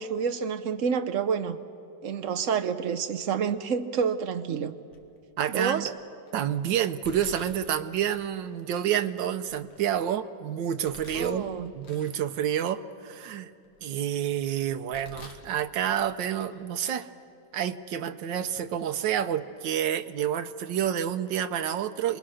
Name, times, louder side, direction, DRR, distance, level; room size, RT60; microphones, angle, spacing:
voice 1, 0.0-1.6 2.0-4.7 5.5-5.9 11.1-11.7, right 6 dB, 60° right, 8 dB, 0.9 m, -28 dB
Domestic sounds home sounds, 4.9-5.3 5.9-6.3 7.0-8.2 8.8-8.9 9.4-10.2 10.8-12.2 12.6-12.7 13.3-14.2 14.7-15.5 15.8-16.6 16.8-17.0 17.8-17.9 18.5-18.7 19.0-19.2, left 2 dB, 85° left, 2.3 m, -49 dB
voice 2, 5.4-5.9 6.3-11.5 11.7-13.5 13.8-17.1 17.5-22.2, right 10 dB, 90° right, 10 dB, 1.4 m, -29 dB
28.0 x 21.0 x 6.3 m, 2.5 s
omnidirectional pair, 1.9 m